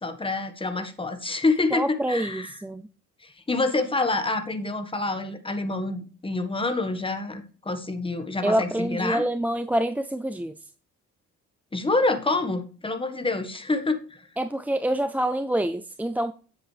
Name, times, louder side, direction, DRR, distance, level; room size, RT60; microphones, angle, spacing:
voice 1, 0.0-2.6 3.2-9.2 11.7-14.3, left 2 dB, 15° left, 1.5 m, -27 dB
voice 2, 1.7-2.8 8.4-10.6 14.4-16.3, right 1 dB, 5° right, 0.4 m, -26 dB
9.7 x 7.7 x 3.3 m
cardioid pair, 90°, 30 cm